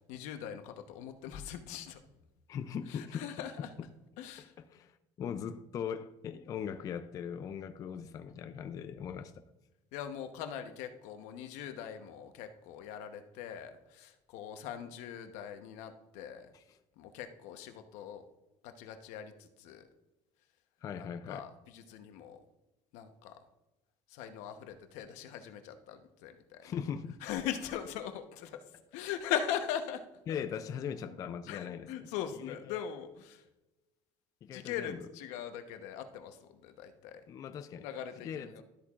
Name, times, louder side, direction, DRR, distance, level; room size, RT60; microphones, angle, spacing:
voice 1, 0.1-2.0 2.9-3.7 4.2-4.5 9.9-16.5 17.0-18.2 18.6-19.9 21.0-22.4 22.9-23.4 24.1-26.7 27.2-28.6 28.9-30.0 31.5-33.4 34.5-37.2 37.8-38.6, left 9 dB, 75° left, 7 dB, 1.0 m, -41 dB
voice 2, 2.5-3.3 4.7-9.4 16.5-16.8 20.8-21.5 26.6-27.2 30.3-32.8 34.4-35.1 37.3-37.9 38.2-38.6, left 8 dB, 30° left, 10 dB, 0.4 m, -40 dB
12.5 x 8.4 x 2.4 m, 0.99 s
cardioid pair, 175°, 12 cm